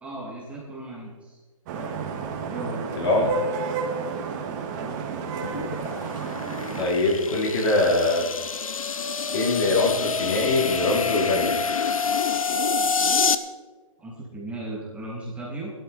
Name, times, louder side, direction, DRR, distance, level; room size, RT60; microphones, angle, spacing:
voice 1, 0.0-1.4 1.7-1.9 2.5-2.8 4.8-4.9 14.0-15.7, right 2 dB, 5° right, -5 dB, 2.7 m, -36 dB
Vehicle horn car horn honking / Traffic noise roadway noise, 1.7-6.8, right 5 dB, 30° right, 1.9 m, -31 dB
voice 2, 3.0-3.3 6.8-8.2 9.3-11.6, left 2 dB, 50° left, -2 dB, 4.2 m, -23 dB
sound 1, 5.4-13.3, left 5 dB, 80° left, 0.9 m, -27 dB
16.0 x 12.0 x 4.3 m, 1.4 s
hypercardioid pair, 145°, 17 cm